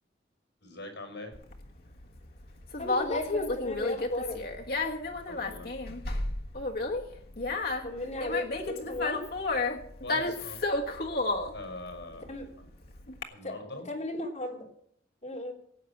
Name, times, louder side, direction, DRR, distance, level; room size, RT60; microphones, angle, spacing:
voice 1, 0.6-1.3 5.1-5.7 10.0-10.6 11.5-12.4 13.3-13.9, left 2 dB, 70° left, 5 dB, 5.3 m, -43 dB
Conversation, 1.3-13.2, left 2 dB, 55° left, 1.5 m, -32 dB
voice 2, 2.8-4.4 7.8-9.2 12.3-12.5 13.4-14.7 15.2-15.5, left 2 dB, 35° left, -1 dB, 3.4 m, -35 dB
18.0 x 8.5 x 5.9 m, 0.66 s
head